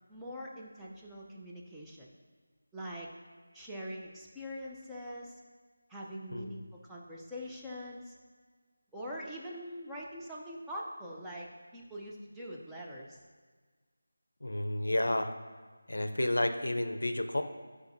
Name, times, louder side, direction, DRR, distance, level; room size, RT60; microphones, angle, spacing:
voice 1, 0.1-2.1 2.7-3.1 3.5-5.4 5.9-8.2 8.9-13.2, equal, 5° right, -6 dB, 0.5 m, -43 dB
voice 2, 14.4-15.3 15.9-17.4, left 1 dB, 65° left, 8 dB, 0.5 m, -31 dB
10.5 x 4.9 x 2.6 m, 1.4 s
figure-of-eight pair, 160°, 0 cm